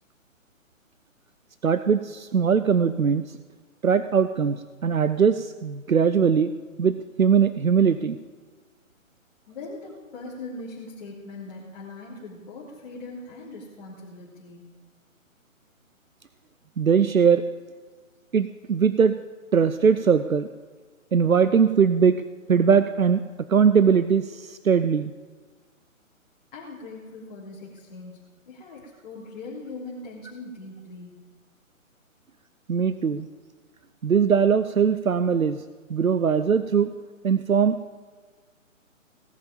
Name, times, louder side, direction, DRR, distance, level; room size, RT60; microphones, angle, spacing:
voice 1, 1.6-3.2 3.8-6.5 6.8-8.2 16.8-17.4 18.3-19.1 19.5-20.5 21.1-22.2 22.5-23.2 23.5-25.1 32.7-33.3 34.0-35.6 35.9-36.9 37.2-37.8, right 6 dB, 80° right, 13 dB, 0.7 m, -20 dB
voice 2, 9.5-14.6 26.5-28.2 28.5-31.1, left 3 dB, 40° left, -6 dB, 3.5 m, -40 dB
18.0 x 7.4 x 8.9 m, 1.4 s
figure-of-eight pair, 135°, 41 cm